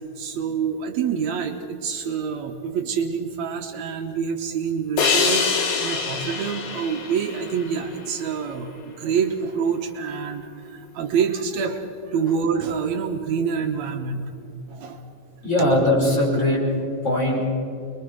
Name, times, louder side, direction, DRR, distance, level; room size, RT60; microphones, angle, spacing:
voice 1, 0.2-14.3 14.7-15.0 15.6-15.7, right 6 dB, 75° right, 5 dB, 2.4 m, -27 dB
sound 1, 5.0-8.3, left 5 dB, 90° left, 3.2 m, -25 dB
voice 2, 15.4-16.6 17.0-17.4, left 1 dB, 25° left, -4 dB, 5.7 m, -20 dB
26.0 x 22.0 x 5.2 m, 2.6 s
omnidirectional pair, 3.3 m